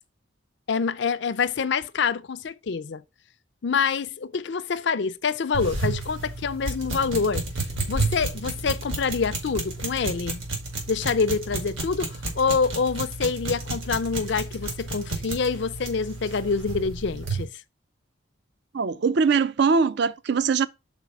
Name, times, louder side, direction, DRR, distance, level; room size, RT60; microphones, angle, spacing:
voice 1, 0.7-3.0 3.6-7.5 7.9-10.4 10.9-17.5, left 5 dB, 55° left, 0.4 m, -26 dB
sound 1, 5.5-17.4, right 2 dB, 75° right, 2.1 m, -31 dB
voice 2, 18.7-20.7, right 5 dB, 55° right, 0.4 m, -22 dB
5.1 x 4.1 x 5.8 m
head